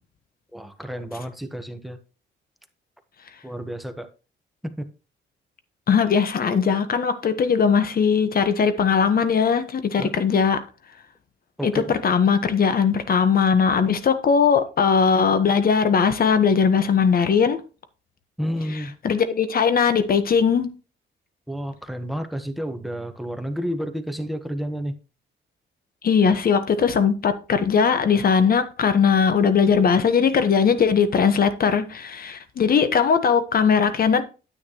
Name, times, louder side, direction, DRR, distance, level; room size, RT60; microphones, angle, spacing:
voice 1, 0.5-2.0 3.4-4.1 4.6-4.9 10.0-10.1 11.6-11.8 18.4-18.9 21.5-24.9, equal, ahead, 1.2 m, -30 dB
voice 2, 5.9-10.6 11.6-17.6 18.7-20.7 26.0-34.2, left 6 dB, 50° left, 1.2 m, -19 dB
9.7 x 8.4 x 3.0 m
cardioid pair, 90°, 20 cm